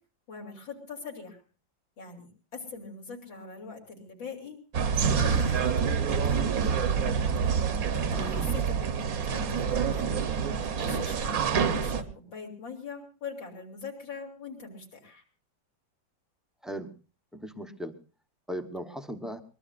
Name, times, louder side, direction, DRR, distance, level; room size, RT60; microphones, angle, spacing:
voice 1, 0.3-1.4 2.0-2.3 2.5-4.6 4.9-6.9 7.5-10.2 10.8-11.4 11.7-15.2, left 5 dB, 75° left, 0 dB, 4.1 m, -42 dB
sound 1, 4.7-12.0, right 6 dB, 55° right, 1.3 m, -27 dB
voice 2, 8.1-8.6 16.6-16.9 17.3-17.9 18.5-19.4, equal, ahead, 6 dB, 0.4 m, -38 dB
23.5 x 20.5 x 2.5 m, 0.35 s
omnidirectional pair, 2.1 m